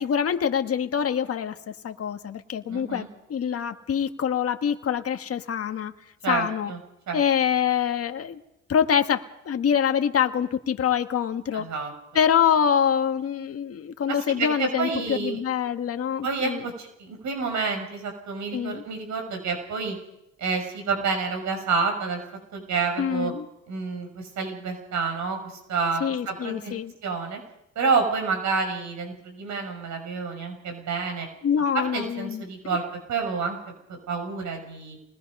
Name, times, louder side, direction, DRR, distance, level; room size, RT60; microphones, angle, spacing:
voice 1, 0.0-1.6 1.8-3.0 3.3-5.9 6.3-6.7 7.1-8.4 8.7-11.7 12.1-16.6 18.5-18.8 23.0-23.4 26.0-26.9 31.4-32.4, left 8 dB, 50° left, 7 dB, 1.5 m, -25 dB
voice 2, 2.7-3.1 6.2-6.8 7.1-7.2 11.5-11.9 14.1-15.4 16.2-20.0 20.4-22.2 22.5-23.3 23.7-26.7 27.0-27.4 27.7-31.3 31.7-32.8 33.1-33.6 33.9-35.0, right 4 dB, 70° right, 4 dB, 6.7 m, -29 dB
27.5 x 20.5 x 5.4 m, 0.83 s
cardioid pair, 90°, 30 cm